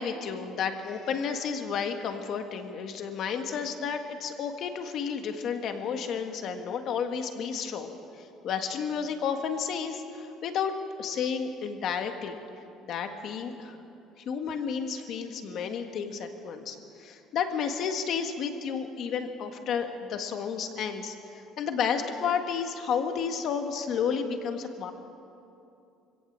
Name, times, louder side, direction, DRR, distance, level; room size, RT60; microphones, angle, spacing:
voice 1, 0.0-12.4 12.8-13.8 14.2-24.9, left 6 dB, 45° left, 6 dB, 1.6 m, -32 dB
25.5 x 17.0 x 7.5 m, 2.7 s
cardioid pair, 180°, 0 cm